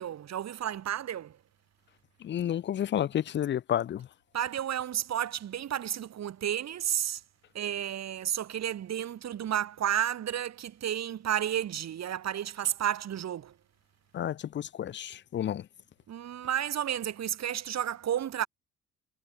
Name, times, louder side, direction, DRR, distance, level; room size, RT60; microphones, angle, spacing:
voice 1, 0.0-1.4 4.3-7.2 7.5-13.5 16.1-18.5, right 10 dB, 60° right, 2.2 m, -32 dB
voice 2, 2.2-4.1 14.1-15.7, left 10 dB, 40° left, 0.4 m, -31 dB
cardioid pair, 90°, 30 cm